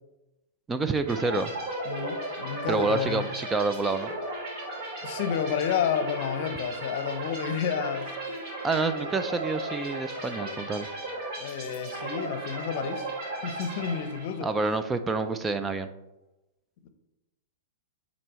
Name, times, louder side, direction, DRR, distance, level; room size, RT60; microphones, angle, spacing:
voice 1, 0.7-1.5 2.7-4.1 8.6-10.9 14.4-15.9, right 3 dB, 15° right, 0.4 m, -28 dB
sound 1, 1.1-14.6, right 1 dB, 45° right, 2.0 m, -36 dB
voice 2, 1.8-3.3 5.0-8.2 11.4-13.1 13.4-14.5 16.8-16.9, left 8 dB, 60° left, 0.7 m, -30 dB
7.7 x 4.1 x 3.0 m
hypercardioid pair, 125°, 0 cm